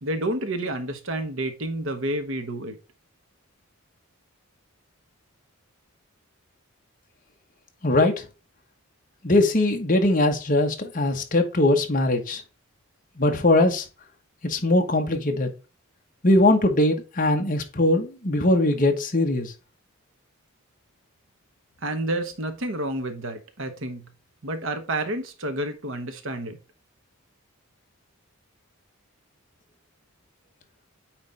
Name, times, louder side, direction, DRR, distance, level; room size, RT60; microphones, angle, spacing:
voice 1, 0.0-2.8 21.8-24.1 24.4-26.6, right 1 dB, 60° right, 1.2 m, -29 dB
voice 2, 7.8-8.2 9.2-12.4 13.2-13.8 14.4-15.5 16.2-19.5, left 2 dB, 35° left, 1.1 m, -21 dB
8.8 x 3.2 x 4.0 m
head